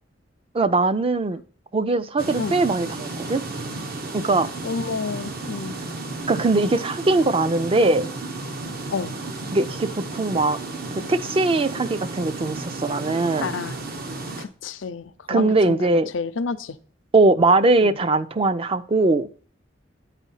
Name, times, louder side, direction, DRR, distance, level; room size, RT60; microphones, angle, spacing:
voice 1, 0.5-1.4 1.7-3.4 4.1-4.5 6.2-8.1 9.5-10.6 11.1-13.6 15.3-16.1 17.1-19.3, right 2 dB, 30° right, 13 dB, 0.4 m, -20 dB
sound 1, 2.2-14.5, right 2 dB, 50° right, 0.9 m, -33 dB
voice 2, 4.6-5.8 8.9-9.1 13.4-13.8 14.4-15.8 16.1-16.8 17.8-18.0, left 5 dB, 90° left, 12 dB, 0.5 m, -30 dB
9.0 x 4.2 x 5.6 m, 0.42 s
head